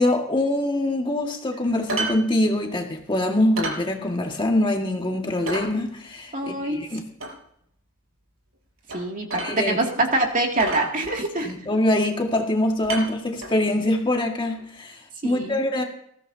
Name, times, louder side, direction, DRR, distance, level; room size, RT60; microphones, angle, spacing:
voice 1, 0.0-7.1 9.4-9.8 11.5-15.8, left 1 dB, 25° left, 1 dB, 1.9 m, -24 dB
sound 1, 1.9-2.2 2.5-2.6 3.0-3.1 3.6-3.8 4.3-4.4 4.8-4.9 5.5-5.7 7.2-7.3 8.9-9.0 9.3-9.9 10.1-10.2 10.6-11.5 12.3-12.5 12.8-13.6 14.6-14.7, right 2 dB, 75° right, 5.4 m, -30 dB
voice 2, 6.3-6.8 8.9-11.5 15.2-15.6, right 2 dB, 40° right, 1 dB, 2.5 m, -25 dB
21.0 x 15.0 x 2.8 m, 0.70 s
head